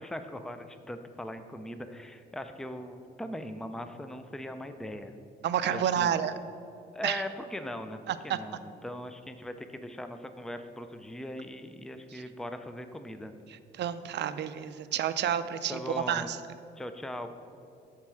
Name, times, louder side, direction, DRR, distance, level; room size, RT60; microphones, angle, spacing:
voice 1, 0.0-5.1 5.7-6.1 6.9-13.3 15.7-16.3 16.8-17.3, left 1 dB, ahead, 8 dB, 0.4 m, -40 dB
voice 2, 5.4-6.3 7.0-7.2 8.1-8.4 12.1-12.2 13.7-16.4, right 9 dB, 60° right, 12 dB, 0.5 m, -30 dB
7.2 x 4.6 x 6.3 m, 2.6 s
cardioid pair, 90°, 20 cm